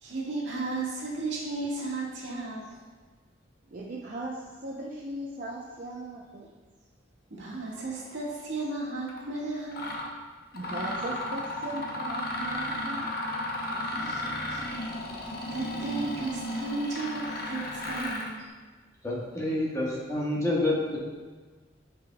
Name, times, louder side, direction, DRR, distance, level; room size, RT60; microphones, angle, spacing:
voice 1, 0.0-2.8 7.3-10.0 14.0-14.6 15.2-18.5, right 3 dB, 75° right, -5 dB, 1.7 m, -34 dB
voice 2, 3.7-6.5 10.5-13.1 13.7-14.3, right 1 dB, 50° right, -3 dB, 0.6 m, -38 dB
Mechanisms, 9.1-9.2 9.7-10.1 10.5-18.4, left 1 dB, 55° left, 0.9 m, -34 dB
voice 3, 19.0-21.0, left 1 dB, 15° left, -5 dB, 1.4 m, -28 dB
10.0 x 5.2 x 2.3 m, 1.4 s
head